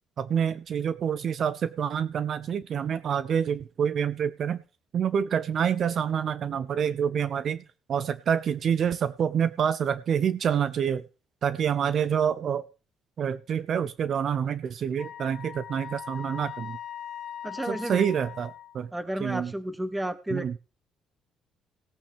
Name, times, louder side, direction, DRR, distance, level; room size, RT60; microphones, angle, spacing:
voice 1, 0.2-4.6 4.9-7.6 7.9-11.0 11.4-12.7 13.2-16.8 17.6-18.9 19.2-19.5 20.3-20.6, right 8 dB, 50° right, 15 dB, 0.5 m, -27 dB
Wind instrument woodwind instrument, 15.0-18.8, left 9 dB, 45° left, 1.6 m, -40 dB
voice 2, 17.4-18.0 18.9-20.6, right 1 dB, 10° right, 13 dB, 1.0 m, -32 dB
17.5 x 8.7 x 3.4 m, 0.35 s
cardioid pair, 115°, 0 cm